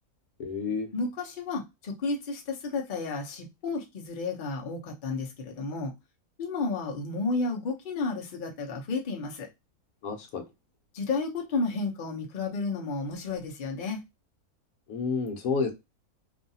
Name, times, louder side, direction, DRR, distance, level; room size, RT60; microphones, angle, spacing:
voice 1, 0.4-0.9 10.0-10.4 14.9-15.7, left 5 dB, 75° left, 1.1 m, -30 dB
voice 2, 0.9-5.9 6.4-9.5 10.9-14.0, left 3 dB, 45° left, 0.7 m, -32 dB
2.7 x 2.4 x 2.6 m
omnidirectional pair, 1.6 m